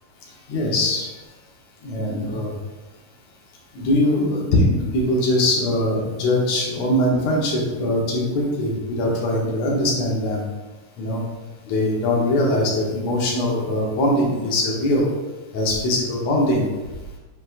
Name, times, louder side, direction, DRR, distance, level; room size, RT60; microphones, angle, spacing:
voice 1, 0.5-1.1 1.8-2.5 3.7-10.4 11.0-11.2 11.7-15.1 15.5-16.7, left 1 dB, 60° left, -2 dB, 2.2 m, -21 dB
7.9 x 5.3 x 2.6 m, 1.2 s
omnidirectional pair, 3.8 m